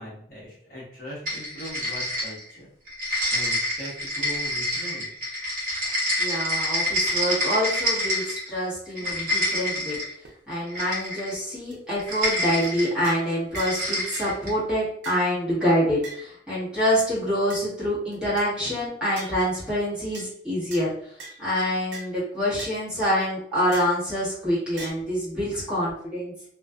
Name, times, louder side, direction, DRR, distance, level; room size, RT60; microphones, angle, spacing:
voice 1, 0.0-2.7 3.3-5.1 9.0-9.1, equal, 45° left, -7 dB, 0.9 m, -40 dB
sound 1, 1.3-2.6 2.9-8.5 8.9-10.1 10.7-11.4 12.0-12.9 13.5-14.6, equal, 45° right, 1.0 m, -27 dB
voice 2, 6.2-10.0 10.5-20.9 21.4-26.3, equal, 5° right, -10 dB, 1.1 m, -26 dB
sound 2, 9.9-10.0 10.2-10.3 10.8-10.9 11.3-11.4 11.7-11.8 12.1-12.2 12.6-12.8 13.0-13.3 13.6-13.8 14.1-14.3 15.0-15.3 16.0-16.2 17.0-17.1 17.5-17.6 18.1-18.5 19.2-19.4 20.1-20.3 20.7-20.8 21.2-21.4 21.9-22.1 22.6-22.8 23.0-23.1 23.7-24.0 24.8-24.9, right 3 dB, 75° right, 0.6 m, -40 dB
2.4 x 2.3 x 2.3 m, 0.67 s
head